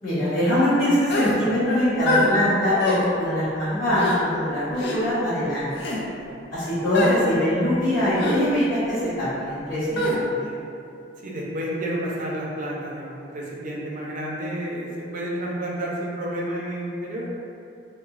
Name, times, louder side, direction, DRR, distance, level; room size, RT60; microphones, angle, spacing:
voice 1, 0.0-5.7 6.5-10.0, left 1 dB, 45° left, -19 dB, 1.4 m, -23 dB
sound 1, 1.1-1.4 2.0-2.3 2.8-3.0 3.9-4.2 4.8-5.0 5.7-6.0 6.9-7.2 8.2-8.4 9.9-10.2, left 1 dB, 60° left, 0.4 m, -24 dB
voice 2, 6.0-6.4 10.3-10.7 11.2-17.3, right 1 dB, 45° right, -4 dB, 0.4 m, -31 dB
2.9 x 2.1 x 2.4 m, 2.5 s
head